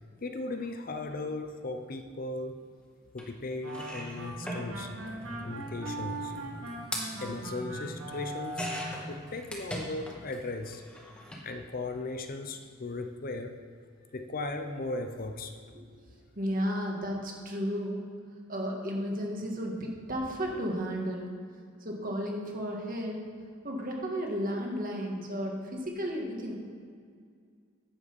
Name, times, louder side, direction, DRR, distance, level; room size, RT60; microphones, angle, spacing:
voice 1, 0.2-2.6 3.1-4.9 5.4-6.3 7.2-10.8 11.4-13.6 14.1-15.5, left 2 dB, 45° left, 7 dB, 0.6 m, -37 dB
sound 1, 3.2-3.3 3.6-10.4 10.6-11.5 12.5-12.6 12.9-13.0, equal, 5° left, 1.6 m, -41 dB
sound 2, 3.6-9.1, right 1 dB, 85° right, 1.6 m, -40 dB
voice 2, 16.4-18.0 18.5-21.3 21.8-23.2 23.6-26.5, equal, 45° right, 0 dB, 1.8 m, -33 dB
9.9 x 7.6 x 5.3 m, 2.2 s
head